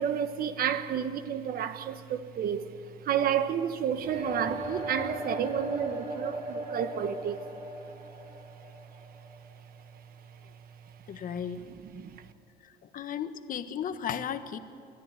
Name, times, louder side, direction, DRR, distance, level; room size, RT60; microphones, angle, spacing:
voice 1, 0.0-2.7 3.0-7.4 11.9-12.2, right 8 dB, 60° right, 1.3 m, -30 dB
sound 1, 3.9-9.8, right 1 dB, 40° right, 4.7 m, -38 dB
voice 2, 11.1-11.6 12.6-14.6, left 8 dB, 55° left, 1.3 m, -35 dB
22.5 x 14.0 x 9.1 m
cardioid pair, 110°, 17 cm